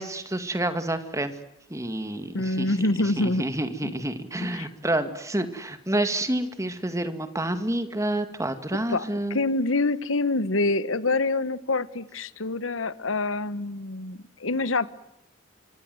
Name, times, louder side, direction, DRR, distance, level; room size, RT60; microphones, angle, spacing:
voice 1, 0.0-1.3 1.7-2.8 3.2-9.4, right 1 dB, 15° right, 9 dB, 2.1 m, -28 dB
voice 2, 2.3-3.5 3.8-3.9 4.6-4.7 8.9-14.9, left 2 dB, 80° left, 16 dB, 1.3 m, -26 dB
25.5 x 24.5 x 7.9 m, 0.81 s
head